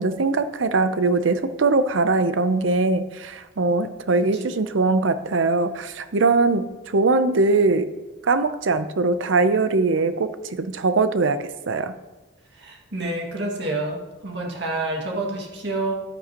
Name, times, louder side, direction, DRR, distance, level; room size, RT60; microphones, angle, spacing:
voice 1, 0.0-7.9 8.2-11.9, right 3 dB, 85° right, 11 dB, 0.6 m, -21 dB
voice 2, 12.5-15.9, right 2 dB, 65° right, 0 dB, 2.0 m, -28 dB
13.5 x 9.2 x 2.9 m, 1.1 s
head